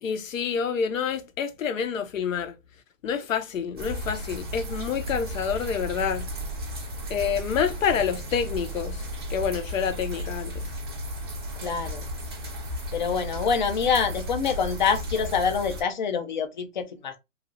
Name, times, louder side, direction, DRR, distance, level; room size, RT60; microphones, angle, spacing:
voice 1, 0.0-2.5 3.0-6.3 7.1-9.0 9.3-10.6, left 7 dB, 85° left, 0.7 m, -28 dB
sound 1, 3.8-15.8, equal, 20° right, 0.4 m, -34 dB
voice 2, 11.6-12.0 12.9-17.2, left 6 dB, 40° left, 0.4 m, -26 dB
2.9 x 2.3 x 2.5 m
hypercardioid pair, 160°, 39 cm